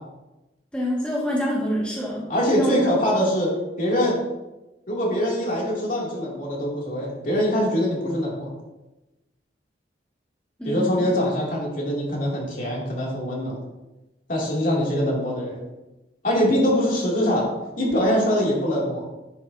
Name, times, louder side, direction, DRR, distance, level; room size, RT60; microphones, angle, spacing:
voice 1, 0.7-2.2 2.5-2.8 10.6-11.1, equal, 5° left, -6 dB, 2.0 m, -26 dB
voice 2, 2.3-4.2 4.9-8.5 10.6-13.6 14.3-15.6 16.2-17.5 17.8-19.0, equal, 50° left, -4 dB, 2.9 m, -23 dB
10.5 x 9.2 x 2.8 m, 1.0 s
head